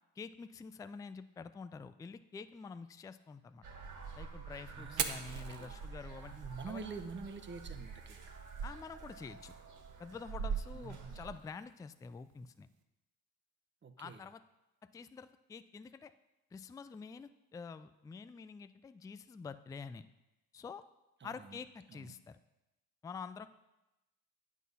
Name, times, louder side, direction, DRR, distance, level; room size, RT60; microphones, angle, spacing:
voice 1, 0.2-3.7 4.2-6.3 6.7-7.0 8.6-9.5 10.0-12.7 14.0-14.4 14.9-16.1 16.5-20.1 20.5-20.8 21.2-22.4 23.0-23.5, left 5 dB, 10° left, 12 dB, 0.3 m, -47 dB
sound 1, 3.6-11.4, right 6 dB, 55° right, 1.7 m, -45 dB
voice 2, 4.7-5.8 6.2-8.2 10.7-11.2 13.8-14.3 21.2-21.6 21.9-22.2, right 4 dB, 30° right, 7 dB, 1.0 m, -47 dB
Fire, 4.8-12.8, right 9 dB, 80° right, 0.8 m, -46 dB
9.3 x 6.3 x 5.4 m, 0.98 s
supercardioid pair, 80°, 36 cm